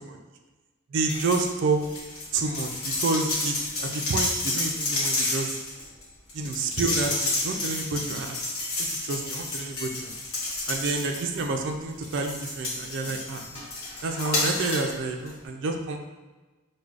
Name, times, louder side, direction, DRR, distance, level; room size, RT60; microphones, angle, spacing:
voice 1, 0.9-1.8 2.3-5.6 6.3-8.4 8.8-10.1 10.7-13.6 14.0-16.0, right 3 dB, 55° right, 3 dB, 0.3 m, -29 dB
sound 1, 1.0-1.5 1.8-11.6 12.0-14.9 15.3-15.4, left 2 dB, 75° left, 0.8 m, -30 dB
4.8 x 2.2 x 2.4 m, 1.2 s
head